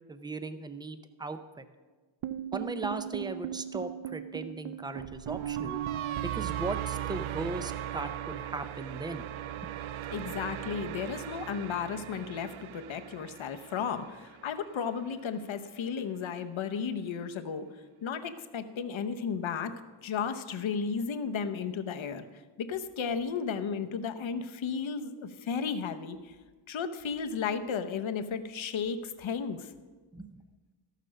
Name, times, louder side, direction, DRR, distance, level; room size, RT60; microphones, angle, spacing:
voice 1, 0.1-1.6 2.5-5.8 6.2-9.2 9.6-9.7 30.1-30.3, right 3 dB, 10° right, 10 dB, 0.5 m, -38 dB
sound 1, 2.2-14.4, right 11 dB, 75° right, 0.5 m, -37 dB
voice 2, 10.1-17.7 18.0-19.7 20.0-26.3 26.7-29.7, left 6 dB, 70° left, 9 dB, 0.9 m, -34 dB
13.5 x 6.7 x 6.3 m, 1.4 s
wide cardioid pair, 135°, 49 cm